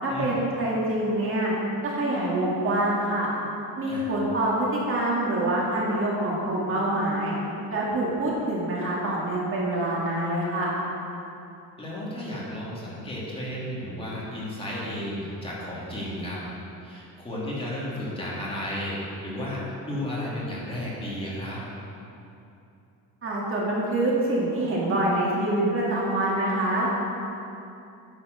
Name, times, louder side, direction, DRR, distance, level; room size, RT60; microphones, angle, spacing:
voice 1, 0.0-1.5 1.8-3.3 3.8-7.4 7.7-10.7 23.2-26.9, right 1 dB, 35° right, -5 dB, 2.2 m, -25 dB
voice 2, 11.8-16.4 16.8-21.6, left 1 dB, 15° left, -7 dB, 2.7 m, -33 dB
10.0 x 8.0 x 6.5 m, 2.8 s
cardioid pair, 155°, 37 cm